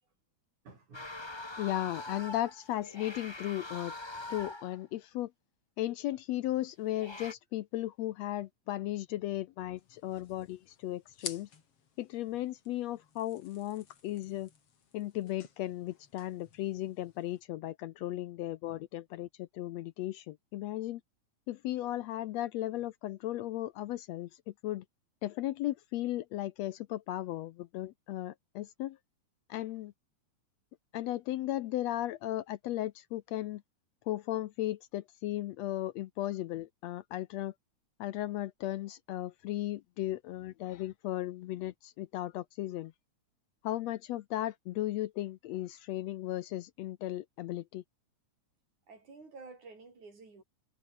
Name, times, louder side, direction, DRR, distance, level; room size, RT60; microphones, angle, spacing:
voice 1, 0.6-1.6 48.9-50.4, right 4 dB, 75° right, 8.2 m, -52 dB
sound 1, 0.9-4.8 6.8-7.3, left 2 dB, 15° left, 1.0 m, -43 dB
voice 2, 1.6-3.9 4.3-5.3 5.8-11.5 12.0-14.5 14.9-21.0 21.5-24.3 24.6-24.8 25.2-29.0 29.5-29.9 30.9-33.6 34.1-37.5 38.0-42.9 43.6-47.8, left 14 dB, 75° left, 1.7 m, -36 dB
sound 2, 9.8-17.4, left 6 dB, 50° left, 3.6 m, -51 dB
omnidirectional pair, 3.4 m